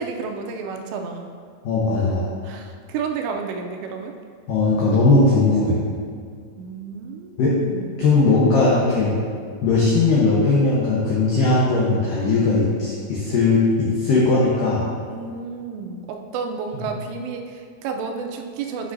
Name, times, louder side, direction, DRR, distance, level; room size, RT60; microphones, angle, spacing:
voice 1, 0.0-1.3 2.4-4.1 6.6-8.1 9.7-9.9 15.1-18.9, right 5 dB, 85° right, 4 dB, 2.6 m, -31 dB
voice 2, 1.6-2.2 4.5-5.8 7.4-7.5 8.0-9.1 9.6-14.8 16.7-16.8, left 3 dB, 90° left, -6 dB, 1.9 m, -18 dB
8.0 x 6.1 x 2.6 m, 2.2 s
omnidirectional pair, 5.1 m